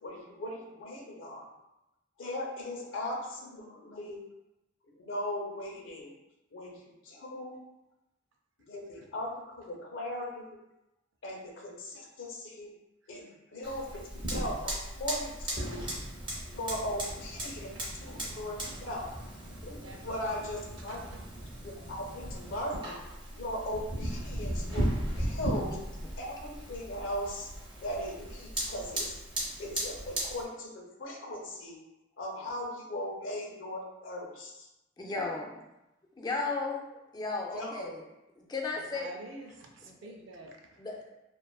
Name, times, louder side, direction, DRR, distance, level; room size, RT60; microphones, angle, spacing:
voice 1, 0.0-1.5 2.2-4.2 5.0-6.1 6.5-7.6 8.7-10.4 11.2-12.7 13.1-13.2 13.5-14.0 14.3-15.8 16.5-17.7 18.0-19.0 19.6-21.0 21.6-22.9 23.3-25.7 26.2-27.5 27.8-29.1 29.6-31.8 32.2-34.7 37.5-38.0, left 1 dB, 80° left, -1 dB, 0.6 m, -38 dB
Fire, 13.6-30.4, right 1 dB, 25° right, 0.6 m, -37 dB
voice 2, 19.7-21.3 22.3-22.5 38.6-40.9, right 2 dB, 75° right, 1 dB, 0.4 m, -49 dB
voice 3, 35.0-35.6 36.2-36.9 37.1-38.0 38.4-39.1 39.8-40.1 40.8-41.1, left 3 dB, 20° left, 0 dB, 0.3 m, -35 dB
2.5 x 2.4 x 2.3 m, 0.93 s
head